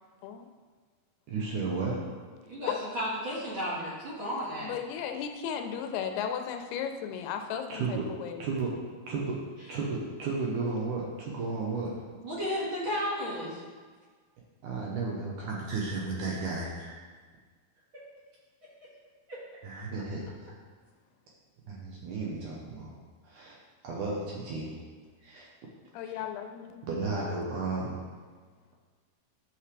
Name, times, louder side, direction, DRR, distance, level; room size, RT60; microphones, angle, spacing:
voice 1, 1.3-2.1 7.7-8.1 8.4-8.7 9.1-9.4 9.7-12.0 14.6-17.0 19.6-20.5 21.7-22.9 23.2-24.8 25.2-25.5 26.0-26.2 26.9-28.0, right 3 dB, 70° right, -3 dB, 2.2 m, -33 dB
voice 2, 2.5-4.7 12.2-13.6 19.3-19.4, equal, 45° right, -8 dB, 1.8 m, -33 dB
voice 3, 4.6-8.4 25.9-26.8, left 8 dB, 85° left, 6 dB, 2.7 m, -35 dB
11.0 x 6.4 x 3.3 m, 1.5 s
omnidirectional pair, 4.5 m